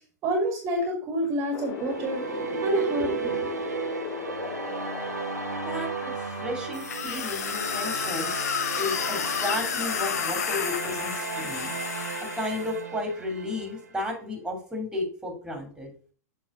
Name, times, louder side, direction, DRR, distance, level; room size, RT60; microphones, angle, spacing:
voice 1, 0.2-2.2 2.6-3.5, right 1 dB, 35° right, 2 dB, 1.9 m, -27 dB
Wind, 1.5-7.0, left 12 dB, 40° left, 0.5 m, -38 dB
sound 1, 1.6-14.0, right 5 dB, 80° right, 1.2 m, -35 dB
voice 2, 5.6-8.3 8.7-11.7 12.4-15.9, left 2 dB, 5° right, 1 dB, 2.7 m, -33 dB
sound 2, 6.7-12.7, left 7 dB, 65° left, 0.9 m, -31 dB
7.3 x 4.1 x 4.9 m, 0.41 s
figure-of-eight pair, 100°, 9 cm